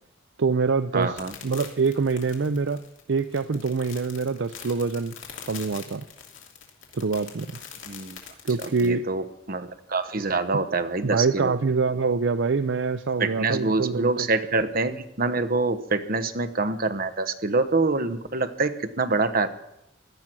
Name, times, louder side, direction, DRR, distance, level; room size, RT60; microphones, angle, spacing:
voice 1, 0.4-2.8 3.1-5.1 5.5-6.0 6.9-7.5 8.4-9.1 11.0-14.3, right 4 dB, 65° right, 12 dB, 0.5 m, -25 dB
voice 2, 0.9-1.3 7.9-8.2 8.6-11.5 13.2-19.5, right 3 dB, 50° right, 9 dB, 1.1 m, -26 dB
sound 1, 1.0-8.9, left 8 dB, 85° left, 2.8 m, -43 dB
17.0 x 12.0 x 6.1 m, 0.83 s
head